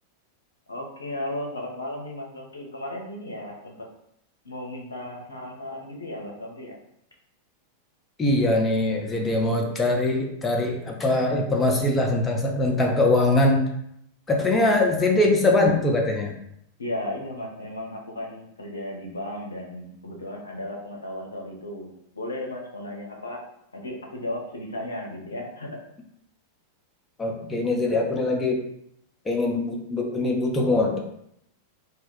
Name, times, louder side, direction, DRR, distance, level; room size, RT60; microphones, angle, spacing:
voice 1, 0.7-3.9 4.4-6.8 9.3-9.6 14.5-14.9 16.8-23.4 23.7-25.8, left 1 dB, 75° left, 0 dB, 0.5 m, -35 dB
voice 2, 8.2-13.7 14.3-16.3 27.2-28.6 29.3-31.0, left 2 dB, 15° left, 0 dB, 0.5 m, -22 dB
2.2 x 2.1 x 3.6 m, 0.74 s
figure-of-eight pair, 90°, 0 cm